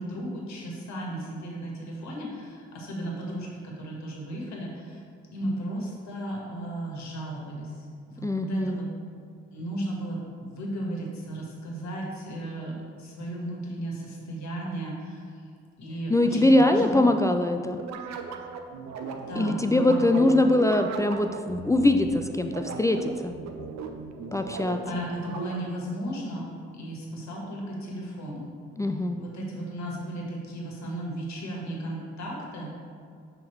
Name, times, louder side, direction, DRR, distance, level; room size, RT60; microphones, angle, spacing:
voice 1, 0.0-5.0 5.3-8.9 9.5-15.4 15.8-16.9 19.1-20.3 24.4-26.5 26.7-28.5 29.2-32.8, right 1 dB, 60° left, -2 dB, 1.5 m, -35 dB
voice 2, 8.2-8.8 16.1-17.8 19.4-23.3 24.3-25.0 28.8-29.2, left 1 dB, 10° left, 5 dB, 0.3 m, -22 dB
sound 1, 17.8-25.9, right 4 dB, 55° right, 0.6 m, -37 dB
6.0 x 3.7 x 4.5 m, 2.2 s
hypercardioid pair, 40°, 32 cm